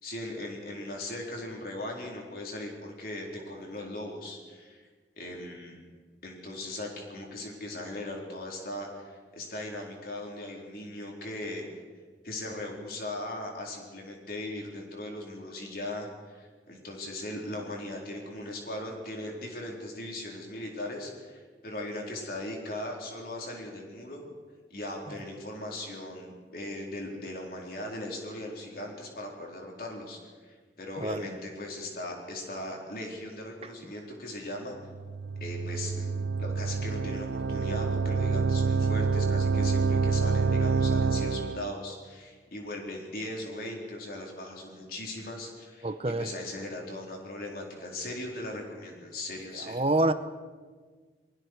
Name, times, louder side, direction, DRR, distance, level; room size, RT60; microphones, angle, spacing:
voice 1, 0.0-4.9 5.2-5.8 6.2-11.6 12.2-24.2 24.7-34.8 35.4-36.1 36.4-49.8, left 1 dB, 55° left, 0 dB, 4.1 m, -39 dB
voice 2, 31.0-31.3 45.8-46.3 49.6-50.1, right 2 dB, 35° right, 11 dB, 0.8 m, -27 dB
sound 1, 34.9-41.7, right 4 dB, 85° right, 0.5 m, -27 dB
29.0 x 19.5 x 4.7 m, 1.5 s
head